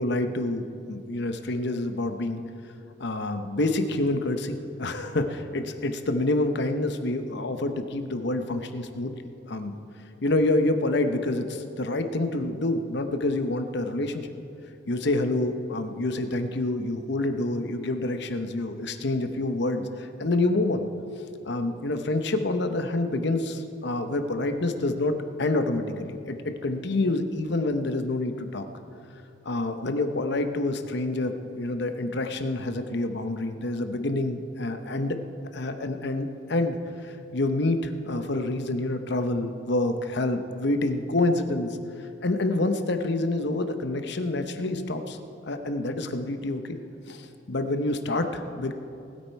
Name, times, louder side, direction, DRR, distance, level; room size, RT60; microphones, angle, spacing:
voice 1, 0.0-2.4 3.0-9.1 9.5-9.7 10.2-14.3 14.9-20.9 21.1-25.1 25.4-28.7 29.4-35.2 35.5-36.8 37.0-41.8 42.2-45.2 45.4-46.8 47.1-48.7, left 2 dB, 65° left, 8 dB, 0.9 m, -27 dB
19.5 x 8.7 x 4.6 m, 2.7 s
head